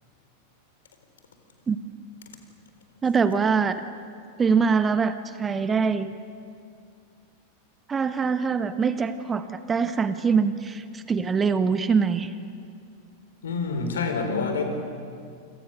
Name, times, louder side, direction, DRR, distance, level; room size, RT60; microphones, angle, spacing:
voice 1, 3.0-3.8 4.4-6.1 7.9-12.3, right 5 dB, 20° right, 11 dB, 1.1 m, -23 dB
voice 2, 13.4-14.6, left 4 dB, 65° left, 6 dB, 3.8 m, -27 dB
28.0 x 27.0 x 6.6 m, 2.3 s
figure-of-eight pair, 90°, 0 cm